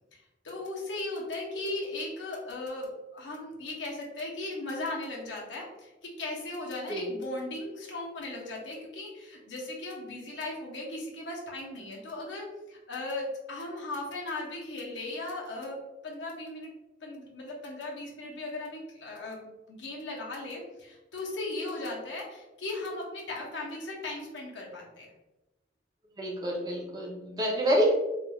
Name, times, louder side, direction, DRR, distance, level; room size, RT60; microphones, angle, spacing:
voice 1, 0.1-15.8 16.0-16.7 17.0-25.1, left 2 dB, 80° left, -2 dB, 0.8 m, -37 dB
voice 2, 26.2-27.9, equal, 20° right, -2 dB, 0.6 m, -27 dB
3.1 x 2.4 x 2.3 m, 1.0 s
head